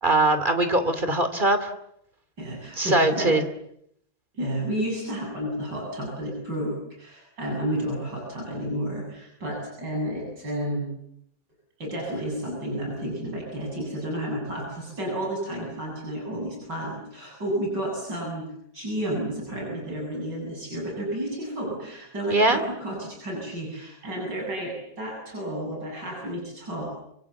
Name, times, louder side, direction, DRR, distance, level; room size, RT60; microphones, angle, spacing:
voice 1, 0.0-1.7 2.8-3.4 22.3-22.6, right 2 dB, 25° right, 9 dB, 2.7 m, -21 dB
voice 2, 2.4-3.4 4.3-10.9 11.8-18.5 18.7-26.9, right 1 dB, 65° right, -2 dB, 8.7 m, -31 dB
29.0 x 25.5 x 7.3 m, 0.73 s
omnidirectional pair, 2.0 m